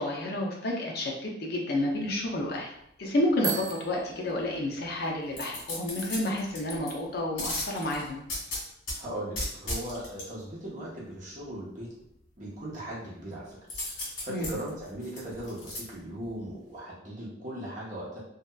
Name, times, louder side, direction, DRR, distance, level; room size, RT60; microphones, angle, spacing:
voice 1, 0.0-2.7 3.0-8.2 14.3-14.5, left 1 dB, 50° left, 0 dB, 0.4 m, -30 dB
Bicycle bell, 3.4-5.1, right 8 dB, 75° right, 0.3 m, -37 dB
sound 1, 5.3-6.9 7.4-9.0 9.3-10.2 13.7-15.8 16.2-16.3, left 1 dB, 90° left, 1.3 m, -35 dB
voice 2, 9.0-11.9 12.4-13.6 14.2-18.2, right 1 dB, 40° right, -6 dB, 0.8 m, -38 dB
2.7 x 2.2 x 2.2 m, 0.76 s
head